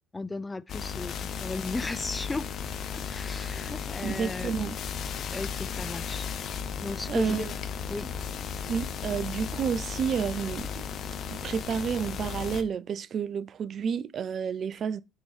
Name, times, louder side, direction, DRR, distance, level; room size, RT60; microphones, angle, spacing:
voice 1, 0.1-2.5 2.9-4.5 5.3-6.5 6.8-7.5 7.9-8.1, left 3 dB, 20° left, 0.4 m, -36 dB
sound 1, 0.7-12.6, left 7 dB, 50° left, 0.8 m, -35 dB
voice 2, 4.0-4.8 7.1-7.5 8.7-10.8 11.3-15.0, right 7 dB, 50° right, 0.3 m, -30 dB
8.5 x 3.7 x 3.3 m
hypercardioid pair, 65°, 0 cm